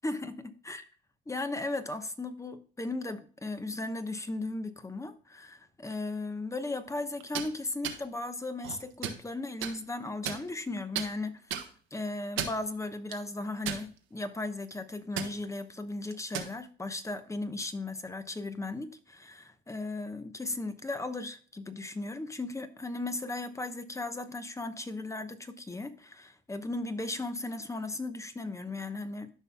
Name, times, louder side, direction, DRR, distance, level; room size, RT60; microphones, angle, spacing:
voice 1, 0.0-0.8 1.3-11.6 11.9-29.3, left 2 dB, 15° left, 0.9 m, -36 dB
sound 1, 7.2-7.5 7.8-8.0 8.6-9.2 9.6-9.7 10.2-10.7 10.9-11.1 11.5-11.7 12.2-12.6 13.1-13.2 13.6-14.2 14.5-14.7 15.2-15.3 16.1-16.5, right 9 dB, 85° right, 1.1 m, -34 dB
13.0 x 5.5 x 2.2 m
cardioid pair, 90°, 20 cm